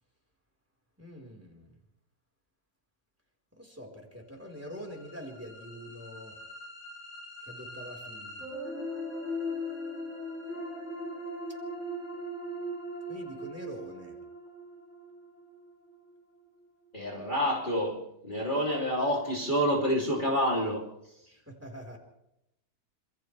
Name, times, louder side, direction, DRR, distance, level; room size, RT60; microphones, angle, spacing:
voice 1, 1.0-1.7 3.6-6.3 7.4-8.5 13.1-14.1 21.3-22.0, equal, 10° right, 4.5 m, -45 dB
sound 1, 4.6-16.6, left 1 dB, 50° left, 8.5 m, -40 dB
voice 2, 16.9-20.9, equal, 30° left, 3.3 m, -28 dB
27.5 x 27.5 x 3.4 m
omnidirectional pair, 1.7 m